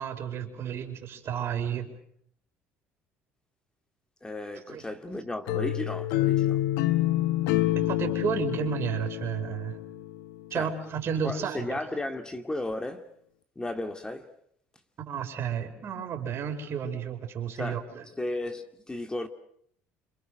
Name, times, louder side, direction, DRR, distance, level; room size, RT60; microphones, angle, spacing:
voice 1, 0.0-1.9 4.7-4.8 7.7-9.8 10.5-11.8 15.0-18.0, right 7 dB, 55° right, 4.9 m, -32 dB
voice 2, 4.2-6.6 10.5-10.7 11.2-13.1 13.6-14.3 17.5-17.8 18.2-19.3, left 1 dB, 15° left, 2.3 m, -34 dB
sound 1, 5.5-10.4, left 14 dB, 85° left, 1.1 m, -27 dB
28.0 x 26.0 x 6.5 m
supercardioid pair, 85°, 5 cm